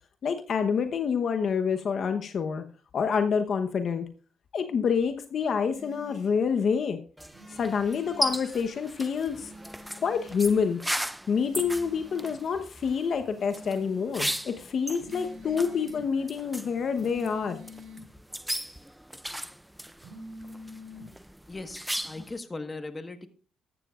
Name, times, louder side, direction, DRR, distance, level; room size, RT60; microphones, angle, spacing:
voice 1, 0.2-2.6 2.9-4.1 4.5-7.0 7.5-9.5 10.0-10.8 11.3-17.6, left 6 dB, 55° left, 7 dB, 1.0 m, -27 dB
sound 1, 5.7-6.3 7.3-8.3 9.3-10.4 11.3-12.4 13.3-14.4 15.0-16.0 17.0-18.0 20.0-21.1, left 1 dB, 70° right, 3.8 m, -46 dB
sound 2, 7.2-22.4, equal, 5° right, 0.5 m, -37 dB
voice 2, 21.5-23.3, left 2 dB, 25° left, 8 dB, 1.5 m, -38 dB
14.5 x 12.0 x 2.5 m, 0.38 s
cardioid pair, 90°, 0 cm